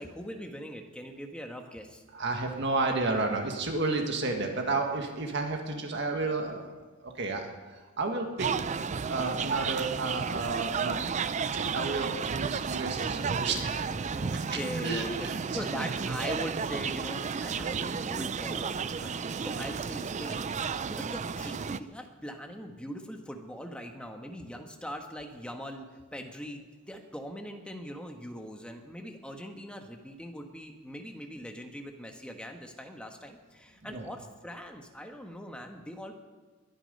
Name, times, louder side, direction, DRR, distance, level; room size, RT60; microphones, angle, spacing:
voice 1, 0.0-2.0 14.1-26.6 26.9-36.1, equal, 5° left, 3 dB, 1.4 m, -41 dB
voice 2, 2.1-6.7 7.0-7.5 7.7-8.5 9.0-13.9 14.5-15.6 33.8-34.1, right 3 dB, 55° right, 3 dB, 1.8 m, -32 dB
sound 1, 8.4-21.8, right 5 dB, 35° right, 0.4 m, -32 dB
21.5 x 10.0 x 5.4 m, 1.3 s
head